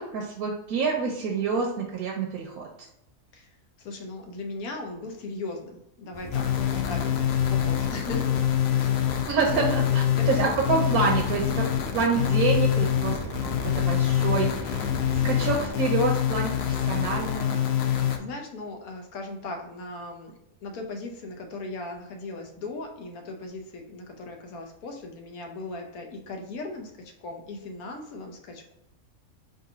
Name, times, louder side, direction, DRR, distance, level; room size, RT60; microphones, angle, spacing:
voice 1, 0.0-2.7 9.3-9.8 10.3-11.6 11.9-13.2 13.4-14.8 15.2-17.6, right 4 dB, 85° right, 0 dB, 1.1 m, -27 dB
voice 2, 3.8-8.4 8.7-9.1 9.5-9.6 10.1-10.6 17.9-20.3 20.6-28.7, left 2 dB, 85° left, 3 dB, 1.3 m, -38 dB
sound 1, 6.1-15.7, right 1 dB, 40° left, 1.8 m, -38 dB
sound 2, 6.3-18.2, left 10 dB, 60° left, 0.7 m, -25 dB
3.9 x 2.6 x 4.8 m, 0.84 s
omnidirectional pair, 1.5 m